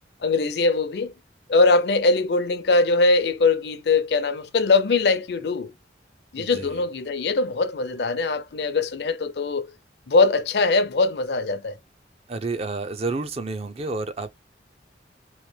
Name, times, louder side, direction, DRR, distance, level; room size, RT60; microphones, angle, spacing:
voice 1, 0.2-1.1 1.5-5.7 6.3-9.7 10.1-11.7, left 3 dB, 65° left, 0.5 m, -21 dB
voice 2, 6.4-6.8 12.3-14.3, right 3 dB, 35° right, 0.5 m, -30 dB
3.1 x 2.9 x 3.2 m
head